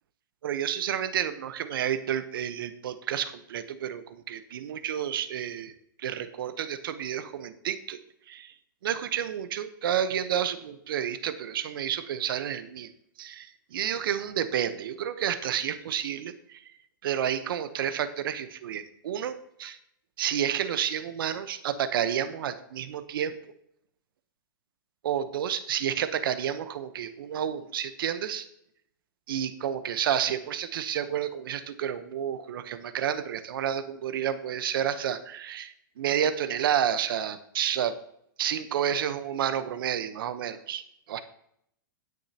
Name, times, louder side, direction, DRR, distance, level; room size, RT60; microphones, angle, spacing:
voice 1, 0.4-8.0 8.3-8.5 8.8-12.9 13.2-16.6 17.0-19.8 20.2-23.4 25.0-28.5 29.3-38.0 38.4-40.8 41.1-41.2, right 9 dB, 70° right, 11 dB, 1.0 m, -30 dB
18.0 x 6.5 x 2.9 m, 0.74 s
hypercardioid pair, 145°, 12 cm